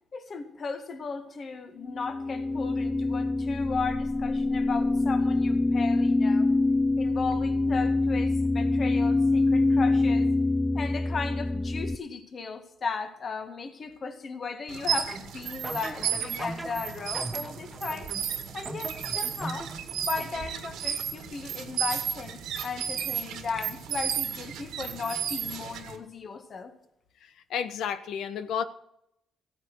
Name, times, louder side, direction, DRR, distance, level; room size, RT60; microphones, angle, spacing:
voice 1, 0.1-6.5 7.0-10.3 10.7-18.1 18.5-19.7 20.0-26.7, left 4 dB, 45° left, 7 dB, 1.9 m, -36 dB
sound 1, 1.8-12.0, left 2 dB, 15° left, 0.5 m, -25 dB
sound 2, 14.7-26.0, right 9 dB, 85° right, 1.9 m, -33 dB
sound 3, 14.9-20.8, right 2 dB, 15° right, 1.3 m, -41 dB
voice 2, 27.5-28.6, left 8 dB, 75° left, 12 dB, 1.0 m, -31 dB
15.0 x 9.4 x 6.3 m, 0.79 s
cardioid pair, 90°, 0 cm